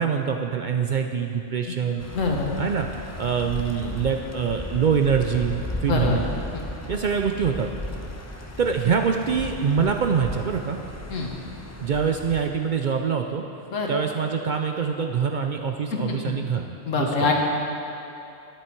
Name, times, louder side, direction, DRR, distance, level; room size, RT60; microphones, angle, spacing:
voice 1, 0.0-2.0 2.6-2.9 3.2-6.3 6.9-7.7 8.6-10.8 11.8-13.4 13.9-16.7 17.0-17.3, right 6 dB, 65° right, 3 dB, 0.4 m, -24 dB
sound 1, 2.0-12.5, left 1 dB, 20° left, 0.5 m, -35 dB
voice 2, 2.1-2.6 5.9-6.2 6.5-6.6 11.1-11.3 13.7-13.9 16.2-16.3 16.9-17.3, left 4 dB, 75° left, 0 dB, 1.7 m, -24 dB
11.5 x 10.0 x 4.5 m, 2.7 s
omnidirectional pair, 1.3 m